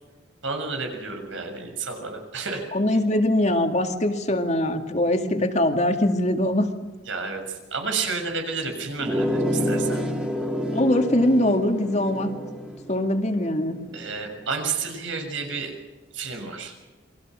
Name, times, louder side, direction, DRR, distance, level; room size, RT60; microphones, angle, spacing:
voice 1, 0.4-2.6 7.1-10.0 13.9-15.7 16.1-16.7, right 4 dB, 85° right, 4 dB, 6.7 m, -30 dB
voice 2, 2.7-6.7 10.7-12.3 12.9-13.8, left 1 dB, 35° left, 5 dB, 2.2 m, -22 dB
sound 1, 9.0-14.3, equal, 5° right, 2.9 m, -29 dB
29.0 x 23.0 x 6.4 m, 1.3 s
head